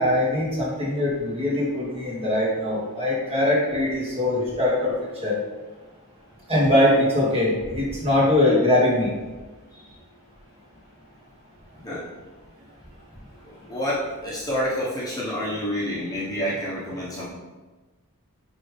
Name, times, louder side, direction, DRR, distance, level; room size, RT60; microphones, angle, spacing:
voice 1, 0.0-4.9 5.2-5.3 6.5-9.1, left 1 dB, 25° right, -6 dB, 2.1 m, -22 dB
voice 2, 13.4-17.3, equal, 15° left, -7 dB, 1.2 m, -28 dB
8.9 x 3.7 x 3.4 m, 1.2 s
head